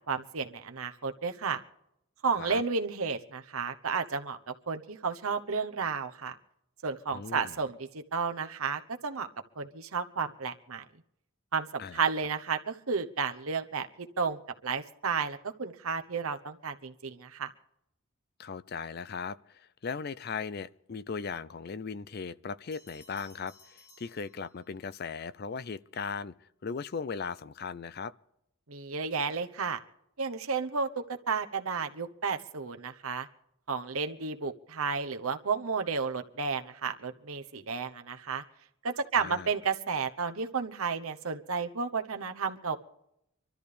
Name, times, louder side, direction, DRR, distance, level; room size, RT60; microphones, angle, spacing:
voice 1, 0.1-1.6 2.2-6.4 6.8-9.3 9.6-10.8 11.5-17.5 28.7-29.8 30.2-33.3 33.7-38.4 38.8-42.8, right 5 dB, 75° right, 1.0 m, -32 dB
voice 2, 7.1-7.6 11.8-12.0 18.4-28.1 39.2-39.5, left 5 dB, 45° left, 0.4 m, -38 dB
Bell, 22.7-24.9, left 2 dB, 65° left, 5.1 m, -58 dB
25.0 x 13.0 x 3.4 m
head